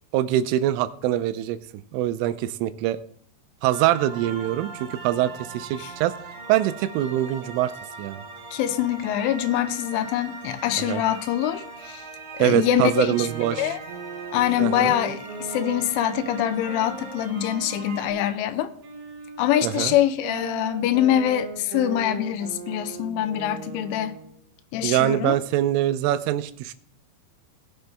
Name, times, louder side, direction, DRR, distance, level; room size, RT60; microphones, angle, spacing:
voice 1, 0.1-1.6 1.9-3.0 3.6-6.1 6.5-7.7 8.0-8.2 10.7-11.0 12.4-13.8 14.6-14.9 19.6-20.0 24.8-26.7, right 13 dB, 85° right, 3.2 m, -24 dB
sound 1, 3.7-18.1, right 3 dB, 35° right, 2.8 m, -40 dB
voice 2, 8.5-12.0 12.4-13.3 13.6-13.8 14.3-18.7 19.4-24.2 24.7-25.4, left 11 dB, 85° left, 3.2 m, -24 dB
sound 2, 13.1-18.3 18.8-24.4, right 6 dB, 65° right, 3.1 m, -38 dB
18.0 x 6.6 x 3.4 m
omnidirectional pair, 5.6 m